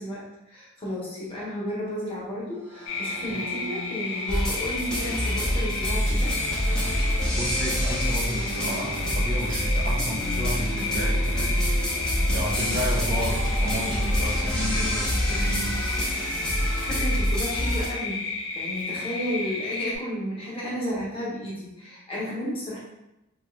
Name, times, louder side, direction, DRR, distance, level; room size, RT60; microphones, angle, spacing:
voice 1, 0.0-6.4 16.9-22.8, equal, 25° left, -6 dB, 0.9 m, -33 dB
sound 1, 2.5-13.9, equal, 90° right, 0.9 m, -44 dB
sound 2, 2.9-20.0, left 3 dB, 60° left, 0.5 m, -32 dB
sound 3, 4.3-17.9, equal, 5° left, 0.7 m, -26 dB
voice 2, 7.3-15.8, right 1 dB, 40° right, -3 dB, 0.5 m, -32 dB
2.9 x 2.3 x 3.1 m, 0.92 s
head